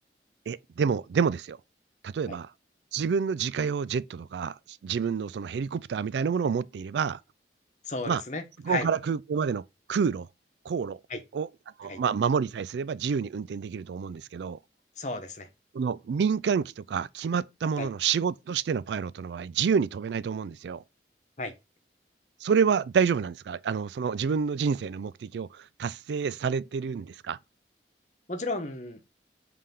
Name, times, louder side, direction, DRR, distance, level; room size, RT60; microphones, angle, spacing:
voice 1, 0.5-1.6 2.0-2.5 2.9-7.2 8.1-8.2 8.6-9.6 9.9-10.3 10.7-11.0 11.3-11.5 11.8-14.6 15.7-20.8 22.4-27.4, right 6 dB, 75° right, 0.3 m, -28 dB
voice 2, 7.9-8.9 11.1-11.2 11.9-12.0 15.0-15.5 17.8-17.9 21.4-21.5 28.3-29.0, left 3 dB, 40° left, 1.0 m, -33 dB
5.5 x 3.4 x 5.7 m
head